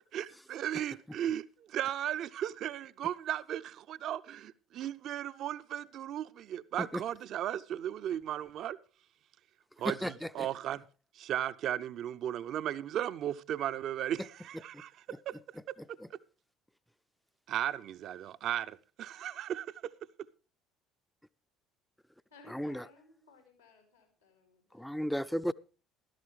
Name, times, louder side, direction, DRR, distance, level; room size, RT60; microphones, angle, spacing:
voice 1, 0.1-8.8 9.8-10.8 11.1-15.4 15.7-15.8 16.1-16.2 17.5-19.9, right 11 dB, 50° right, 0.6 m, -36 dB
voice 2, 9.8-10.5 14.7-14.8 16.0-16.1 22.5-22.9 24.7-25.5, equal, ahead, 0.5 m, -35 dB
voice 3, 22.3-24.9, left 3 dB, 85° left, 4.7 m, -59 dB
15.5 x 13.0 x 3.2 m
figure-of-eight pair, 55°, 0 cm